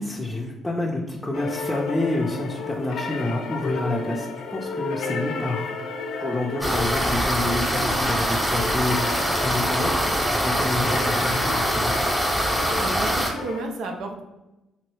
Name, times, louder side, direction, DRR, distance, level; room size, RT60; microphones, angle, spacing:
voice 1, 0.0-5.7 6.2-12.0, left 2 dB, 15° left, -3 dB, 0.5 m, -28 dB
sound 1, 1.3-13.6, left 4 dB, 70° left, 0.4 m, -33 dB
sound 2, 6.6-13.3, equal, 10° right, 1.0 m, -23 dB
voice 2, 12.8-14.2, right 3 dB, 65° right, 3 dB, 0.4 m, -32 dB
3.0 x 2.6 x 3.1 m, 0.99 s
hypercardioid pair, 45°, 0 cm